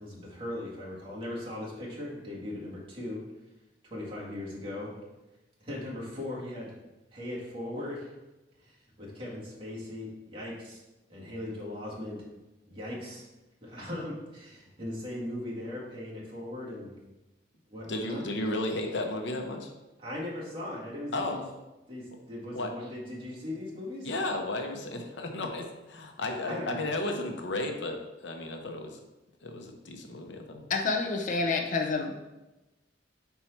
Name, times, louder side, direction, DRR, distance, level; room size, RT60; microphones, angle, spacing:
voice 1, 0.0-3.2 3.8-4.9 5.6-6.7 7.1-8.1 8.6-10.8 11.1-12.3 12.6-13.2 13.6-17.0 17.7-18.2 20.0-21.4 21.9-24.1 26.4-26.9, left 1 dB, 30° right, -6 dB, 1.9 m, -39 dB
voice 2, 17.9-19.7 21.1-21.4 22.5-22.7 24.0-29.0 29.4-30.7, left 2 dB, 80° left, 3 dB, 0.8 m, -34 dB
voice 3, 30.7-32.1, left 4 dB, 45° left, 2 dB, 0.6 m, -28 dB
5.5 x 4.5 x 4.5 m, 1.0 s
head